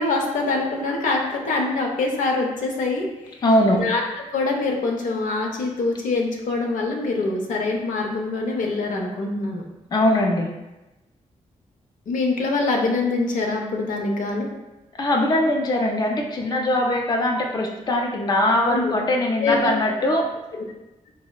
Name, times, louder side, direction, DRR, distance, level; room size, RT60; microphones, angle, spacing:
voice 1, 0.0-3.3 3.7-4.0 4.3-9.6 12.1-14.5 18.7-19.0 19.4-19.7, left 3 dB, 85° left, 0 dB, 0.5 m, -24 dB
voice 2, 3.4-3.8 9.9-10.5 14.9-20.3, left 1 dB, 30° left, 1 dB, 0.4 m, -21 dB
4.1 x 2.0 x 2.2 m, 1.0 s
cardioid pair, 90°, 13 cm